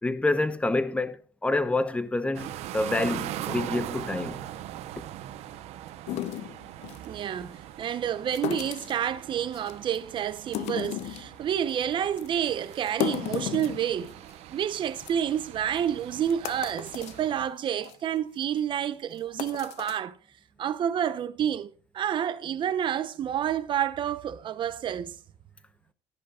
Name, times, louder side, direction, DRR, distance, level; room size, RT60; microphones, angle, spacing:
voice 1, 0.0-4.4, left 2 dB, 10° left, 0.9 m, -27 dB
sound 1, 2.3-17.5, right 12 dB, 70° right, 1.0 m, -41 dB
sound 2, 6.1-7.1 8.3-9.0 9.5-10.0 10.4-11.3 11.7-11.8 12.2-12.3 12.7-14.3 14.6-14.7 15.0-15.1 15.8-15.9 16.3-17.2 17.7-17.9 18.4-18.6 19.2-20.0, left 14 dB, 70° left, 0.7 m, -34 dB
voice 2, 7.0-14.1 14.5-20.2 20.6-25.1, right 9 dB, 45° right, 0.9 m, -29 dB
14.0 x 10.5 x 2.4 m
cardioid pair, 120°, 12 cm